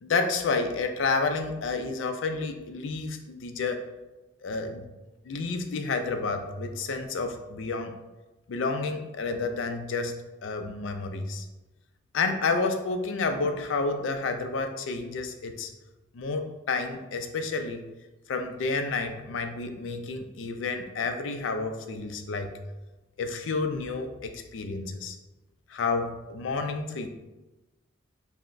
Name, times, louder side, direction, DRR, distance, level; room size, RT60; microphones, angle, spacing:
voice 1, 0.0-3.9 4.4-4.9 5.2-8.0 8.5-11.5 12.1-15.7 16.1-17.8 18.3-22.5 23.2-25.2 25.7-27.1, left 4 dB, 75° left, 6 dB, 0.4 m, -30 dB
5.7 x 2.1 x 2.5 m, 1.1 s
head